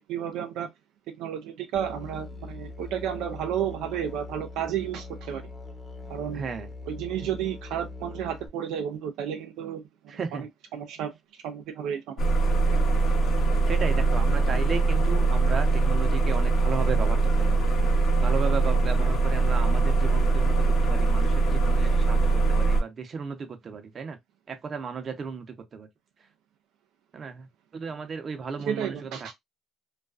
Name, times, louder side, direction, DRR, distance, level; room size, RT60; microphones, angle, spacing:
voice 1, 0.1-0.7 1.2-5.4 6.1-6.5 6.9-9.8 10.7-11.1 11.4-12.0 12.7-12.8 28.7-29.3, right 9 dB, 85° right, 0.3 m, -32 dB
Musical instrument, 1.7-8.5, left 3 dB, 20° left, 0.7 m, -41 dB
voice 2, 6.3-6.7 10.1-10.4 13.7-17.7 18.2-20.6 20.8-24.2 24.5-25.9 27.1-29.3, right 5 dB, 45° right, 0.6 m, -35 dB
sound 1, 12.2-22.8, right 3 dB, 60° left, 0.8 m, -22 dB
2.4 x 2.2 x 2.3 m
cardioid pair, 85°, 0 cm